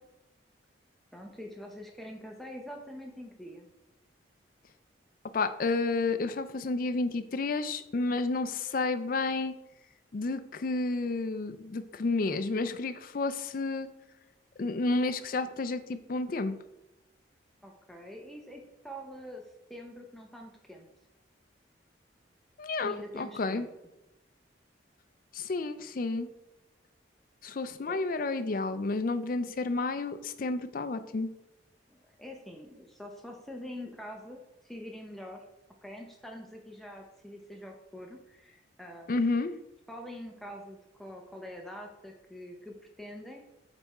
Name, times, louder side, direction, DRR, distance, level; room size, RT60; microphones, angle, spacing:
voice 1, 1.1-3.7 17.6-19.4 19.7-20.9 22.8-23.7 27.9-28.0 31.9-35.4 35.8-39.2 39.9-43.4, equal, ahead, 1 dB, 0.7 m, -45 dB
voice 2, 5.3-9.5 10.1-13.9 14.6-16.6 22.6-23.7 25.3-26.3 27.4-31.3 39.1-39.5, left 3 dB, 45° left, 10 dB, 0.4 m, -31 dB
8.1 x 3.5 x 4.2 m, 0.97 s
head